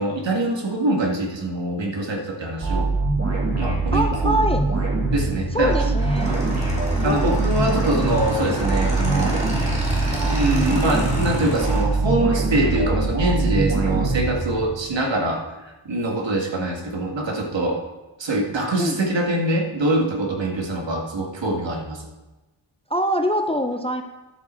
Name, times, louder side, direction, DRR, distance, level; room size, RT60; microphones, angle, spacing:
voice 1, 0.0-2.9 3.6-4.5 5.1-6.0 6.3-6.4 6.7-9.3 10.1-17.8 18.2-22.1, right 1 dB, 65° right, 1 dB, 1.8 m, -24 dB
sound 1, 2.6-14.9, right 3 dB, 30° right, 2.2 m, -23 dB
voice 2, 3.9-4.7 5.5-6.4 7.0-7.4 18.8-19.0 22.9-24.0, equal, 15° left, 6 dB, 0.5 m, -24 dB
Motorcycle / Engine, 6.0-11.8, equal, 15° right, 2.6 m, -30 dB
11.0 x 6.6 x 4.4 m, 1.1 s
wide cardioid pair, 130°, 47 cm